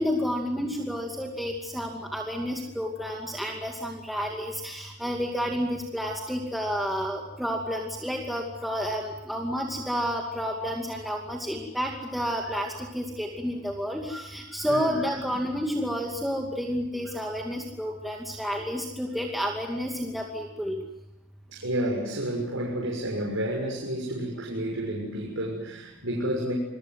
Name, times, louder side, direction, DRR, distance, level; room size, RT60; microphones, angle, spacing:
voice 1, 0.0-20.8, equal, ahead, 0 dB, 2.5 m, -30 dB
voice 2, 14.7-15.0 21.5-26.5, right 1 dB, 85° right, -2 dB, 6.6 m, -30 dB
28.0 x 22.5 x 7.7 m, 0.89 s
head